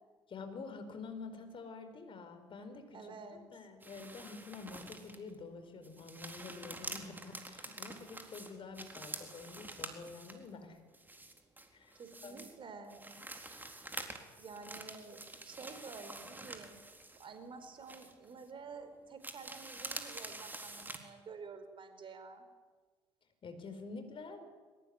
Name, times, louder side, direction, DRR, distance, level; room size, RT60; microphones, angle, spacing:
voice 1, 0.3-3.0 3.3-10.8 11.7-12.4 23.4-24.4, left 4 dB, 45° left, 8 dB, 4.7 m, -48 dB
voice 2, 2.9-3.4 12.0-13.1 14.4-16.8 17.2-22.4, right 4 dB, 45° right, 9 dB, 4.8 m, -50 dB
sound 1, 3.8-5.3 5.8-10.5 10.9-12.6 12.9-17.5 17.9-18.5 19.2-21.0, right 2 dB, 15° right, 4.1 m, -47 dB
22.5 x 21.0 x 9.7 m, 1.4 s
hypercardioid pair, 55°, 13 cm